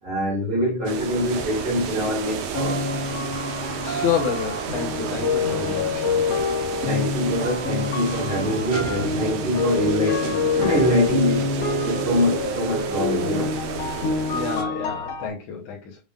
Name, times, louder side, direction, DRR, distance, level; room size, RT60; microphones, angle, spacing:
voice 1, 0.0-2.8 6.8-11.5 11.8-13.6, equal, 35° right, 3.0 m, -24 dB
sound 1, 0.9-14.6, right 7 dB, 70° right, 1.3 m, -31 dB
sound 2, 2.5-15.3, left 4 dB, 55° left, 3.1 m, -27 dB
voice 2, 3.8-6.2 14.3-16.0, left 7 dB, 75° left, 2.5 m, -29 dB
6.9 x 5.5 x 2.4 m
omnidirectional pair, 3.5 m